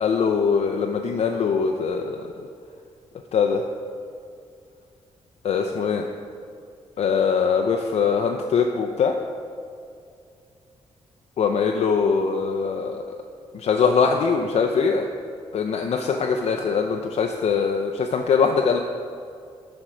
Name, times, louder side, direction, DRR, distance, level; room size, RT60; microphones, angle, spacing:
voice 1, 0.0-2.2 3.3-3.6 5.4-6.0 7.0-9.1 11.4-13.0 13.5-15.1 15.5-18.8, left 5 dB, 65° left, 3 dB, 0.5 m, -22 dB
11.5 x 4.4 x 5.0 m, 2.3 s
cardioid pair, 95°, 11 cm